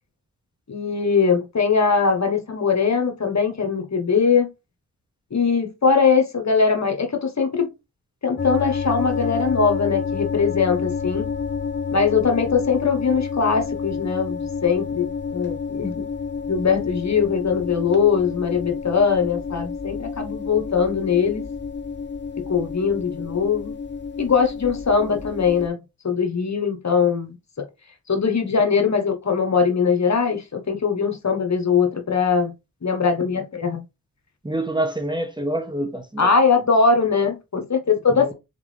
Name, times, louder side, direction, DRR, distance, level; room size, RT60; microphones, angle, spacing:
voice 1, 0.7-4.5 5.3-7.7 8.2-11.2 11.9-16.0 16.5-21.5 22.4-23.7 24.2-25.8 26.0-27.6 28.1-32.5 32.8-33.8 36.2-38.3, left 5 dB, 45° left, 1.3 m, -21 dB
sound 1, 8.4-25.7, left 5 dB, 30° left, 0.8 m, -29 dB
voice 2, 34.4-36.3 38.1-38.3, right 1 dB, 10° right, 1.1 m, -26 dB
3.7 x 3.6 x 3.3 m
cardioid pair, 45°, 37 cm